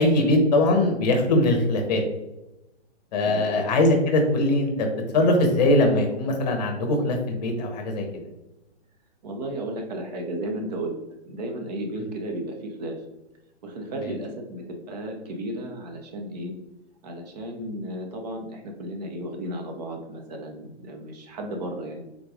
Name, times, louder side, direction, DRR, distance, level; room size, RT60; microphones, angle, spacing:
voice 1, 0.0-2.0 3.1-4.9 5.1-8.1 12.0-12.1 14.0-14.1, left 1 dB, 40° left, 4 dB, 0.8 m, -21 dB
voice 2, 3.2-3.7 9.2-11.0 11.3-13.0 13.6-16.5 17.0-22.0, right 1 dB, 35° right, 3 dB, 0.7 m, -34 dB
3.8 x 3.1 x 2.3 m, 0.96 s
hypercardioid pair, 150°, 34 cm